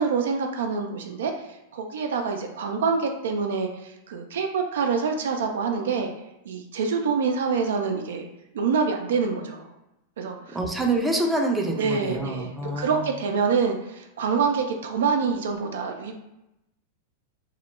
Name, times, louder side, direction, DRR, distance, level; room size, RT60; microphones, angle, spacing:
voice 1, 0.0-1.5 1.7-6.1 6.5-8.3 8.5-9.7 10.2-10.6 11.8-16.2, right 5 dB, 75° right, 3 dB, 0.3 m, -26 dB
voice 2, 10.2-13.1, right 2 dB, 10° right, 1 dB, 0.4 m, -27 dB
2.1 x 2.0 x 3.1 m, 0.89 s
hypercardioid pair, 105°, 0 cm